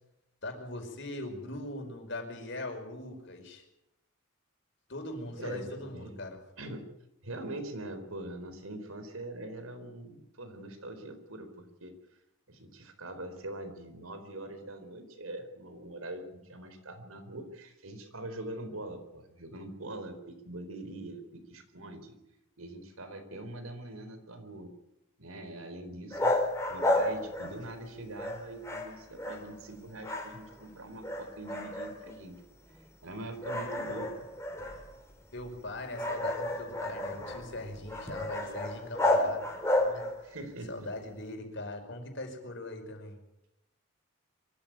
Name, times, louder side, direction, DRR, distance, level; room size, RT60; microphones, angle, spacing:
voice 1, 0.4-3.6 4.9-6.4 35.3-39.4 39.8-40.1 40.7-43.2, left 1 dB, 60° left, 4 dB, 5.3 m, -40 dB
voice 2, 5.3-6.1 6.6-6.9 7.2-11.9 12.5-22.2 22.6-24.7 25.2-26.4 26.7-32.4 33.0-34.3 40.2-40.9, right 1 dB, 90° right, 9 dB, 4.0 m, -43 dB
sound 1, 26.1-27.9 28.2-29.7 30.0-30.7 31.0-32.2 32.7-32.8 33.4-40.3, left 1 dB, 15° left, 4.4 m, -32 dB
24.5 x 14.5 x 9.5 m, 0.88 s
head